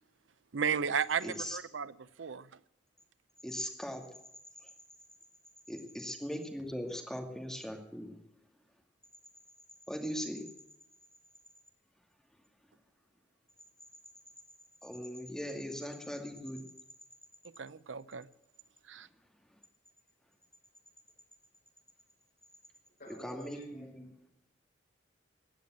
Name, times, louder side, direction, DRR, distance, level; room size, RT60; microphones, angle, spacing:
voice 1, 0.5-2.5 17.6-18.3 18.9-19.1, right 6 dB, 85° right, 16 dB, 0.6 m, -34 dB
voice 2, 1.2-1.6 3.4-4.0 5.7-8.2 9.9-10.4 14.8-16.6 23.2-23.9, equal, 5° left, 2 dB, 2.4 m, -39 dB
voice 3, 23.0-24.3, right 1 dB, 50° left, -1 dB, 7.0 m, -49 dB
16.0 x 9.1 x 9.1 m, 0.83 s
head